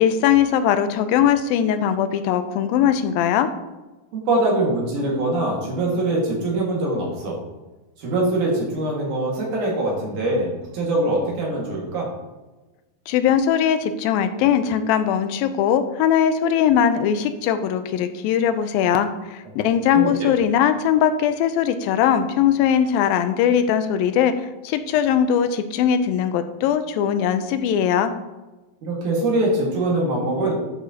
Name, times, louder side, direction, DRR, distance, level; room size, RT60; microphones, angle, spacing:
voice 1, 0.0-3.5 13.1-28.1, left 9 dB, 85° left, 10 dB, 2.3 m, -20 dB
voice 2, 4.1-7.4 8.0-12.1 19.6-19.7 19.9-20.3 28.8-30.6, right 2 dB, 60° right, -2 dB, 3.1 m, -23 dB
11.0 x 6.3 x 2.8 m, 1.1 s
omnidirectional pair, 4.2 m